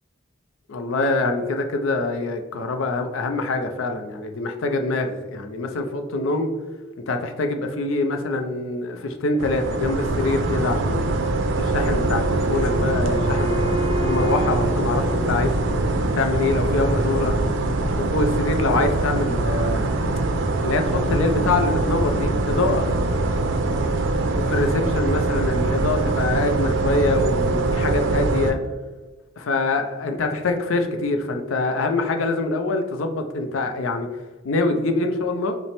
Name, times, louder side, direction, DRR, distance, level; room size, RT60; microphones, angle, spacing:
voice 1, 0.7-6.5 7.1-11.1 11.6-13.7 14.0-15.9 16.1-17.4 18.0-19.8 20.6-22.9 24.3-28.6 29.4-34.1 34.4-35.5, left 2 dB, 85° left, 6 dB, 0.5 m, -24 dB
sound 1, 9.4-28.5, right 2 dB, 70° right, 0.4 m, -23 dB
Wind instrument woodwind instrument, 12.0-16.0, left 1 dB, 35° left, 1.3 m, -31 dB
5.1 x 2.1 x 3.3 m, 1.2 s
head